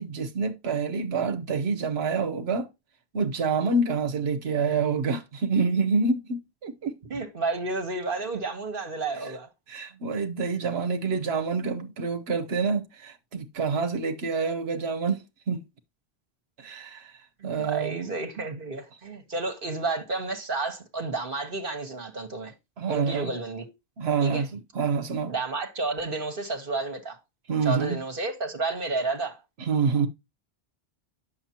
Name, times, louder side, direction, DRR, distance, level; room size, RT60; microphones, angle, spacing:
voice 1, 0.0-2.7 3.1-7.0 9.7-15.6 16.6-17.1 17.4-18.0 22.8-23.3 24.0-25.3 27.5-28.0 29.6-30.1, right 4 dB, 75° right, 1.1 m, -27 dB
voice 2, 7.1-9.5 17.6-22.5 22.9-23.6 24.2-24.5 25.3-27.2 27.6-29.4, right 3 dB, 55° right, 1.3 m, -31 dB
8.8 x 6.5 x 2.8 m
omnidirectional pair, 1.1 m